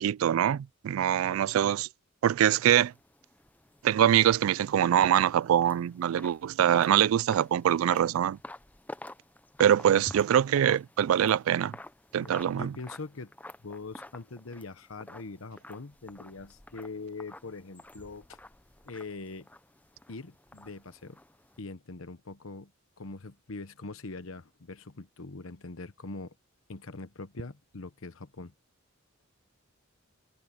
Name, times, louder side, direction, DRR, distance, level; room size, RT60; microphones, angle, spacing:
voice 1, 0.0-1.9 2.2-2.9 3.8-8.4 9.6-11.8 12.1-12.7, right 10 dB, 80° right, 0.3 m, -24 dB
sound 1, 2.8-21.6, left 1 dB, 10° left, 0.6 m, -49 dB
voice 2, 12.2-13.3 13.6-18.4 18.8-19.5 20.1-21.2 21.6-22.7 23.0-26.3 26.7-28.5, left 3 dB, 80° left, 1.1 m, -42 dB
head